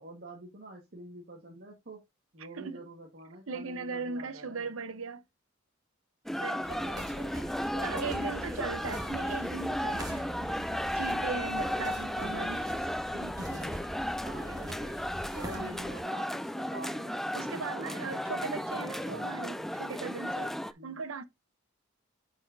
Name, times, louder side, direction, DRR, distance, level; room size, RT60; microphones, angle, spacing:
voice 1, 0.0-2.0 2.3-4.7 6.7-9.1 10.4-10.8 11.5-12.1 13.4-13.8 14.2-14.9 15.3-17.2 17.7-18.5 20.8-21.0, right 1 dB, 50° right, 1.6 m, -47 dB
voice 2, 2.5-2.8 3.5-5.2 6.4-6.9 7.8-10.3 10.9-12.8 13.1-13.4 15.5-15.8 17.3-21.2, right 4 dB, 85° right, 0.8 m, -38 dB
sound 1, 6.3-20.7, equal, ahead, 0.3 m, -34 dB
sound 2, 6.6-16.0, right 1 dB, 20° right, 1.9 m, -44 dB
10.0 x 4.9 x 2.6 m
head